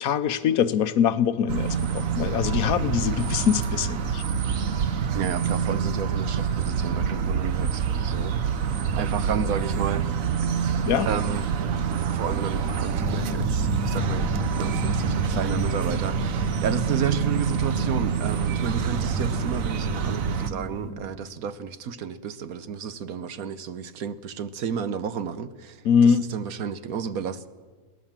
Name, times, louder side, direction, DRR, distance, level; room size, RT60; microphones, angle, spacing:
voice 1, 0.0-4.2 10.8-11.1 25.8-26.2, left 7 dB, 85° left, 1.3 m, -23 dB
sound 1, 1.5-20.5, right 7 dB, 70° right, 1.3 m, -26 dB
voice 2, 5.1-8.3 8.7-10.1 11.1-11.5 12.1-14.3 14.5-27.5, right 7 dB, 85° right, 1.4 m, -32 dB
sound 2, 12.9-20.9, equal, ahead, 6.6 m, -33 dB
22.0 x 17.5 x 7.4 m
omnidirectional pair, 1.5 m